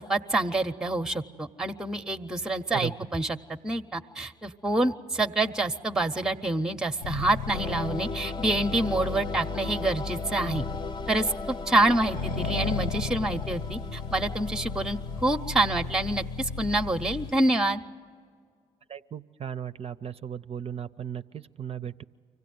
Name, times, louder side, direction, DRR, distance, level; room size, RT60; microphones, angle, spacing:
voice 1, 0.0-10.6 11.1-17.8, right 2 dB, 5° right, 9 dB, 0.7 m, -27 dB
Accelerating revving vroom, 7.0-17.4, left 4 dB, 65° left, 1.0 m, -35 dB
sound 1, 7.5-15.4, left 4 dB, 30° left, 0.5 m, -38 dB
voice 2, 18.9-22.0, right 9 dB, 40° right, 11 dB, 0.5 m, -36 dB
24.5 x 16.0 x 9.4 m, 2.1 s
hypercardioid pair, 50°, 15 cm